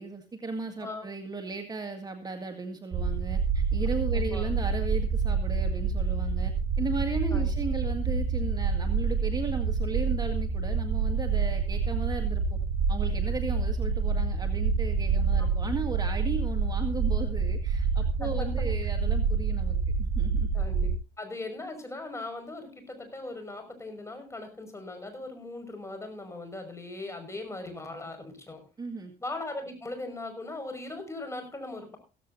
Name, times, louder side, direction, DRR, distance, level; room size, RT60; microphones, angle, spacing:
voice 1, 0.0-12.6 12.9-20.5 28.8-29.1, right 4 dB, 25° right, 5 dB, 1.9 m, -36 dB
voice 2, 0.7-1.1 4.1-4.5 7.3-7.5 18.2-18.9 20.5-20.9 21.2-28.6 29.2-32.0, left 2 dB, 15° left, 7 dB, 5.6 m, -39 dB
sound 1, 2.9-21.0, right 5 dB, 50° right, 5.0 m, -27 dB
15.5 x 15.5 x 2.7 m, 0.32 s
cardioid pair, 110°, 17 cm